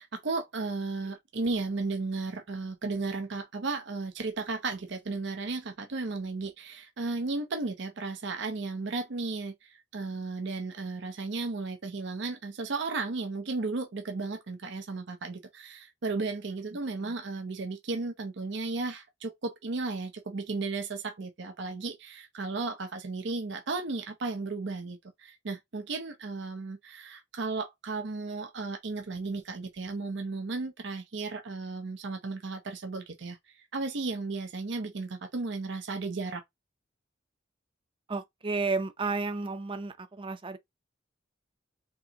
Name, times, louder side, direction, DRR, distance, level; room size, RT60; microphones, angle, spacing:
voice 1, 0.0-36.4, right 3 dB, 65° right, 0.7 m, -34 dB
voice 2, 38.1-40.6, right 3 dB, 30° right, 0.6 m, -32 dB
4.6 x 2.9 x 2.8 m
head